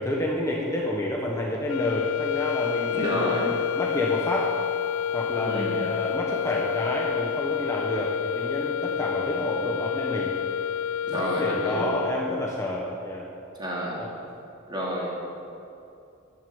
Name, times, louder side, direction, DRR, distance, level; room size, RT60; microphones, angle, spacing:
voice 1, 0.0-4.5 5.1-10.3 11.1-13.3 14.0-14.1, left 1 dB, 15° left, -3 dB, 1.2 m, -29 dB
sound 1, 1.6-12.5, left 9 dB, 75° left, 0.3 m, -29 dB
voice 2, 2.9-3.5 5.4-5.8 11.0-12.0 13.6-14.0 14.7-15.2, equal, 20° right, -4 dB, 2.8 m, -30 dB
11.0 x 11.0 x 7.2 m, 2.7 s
head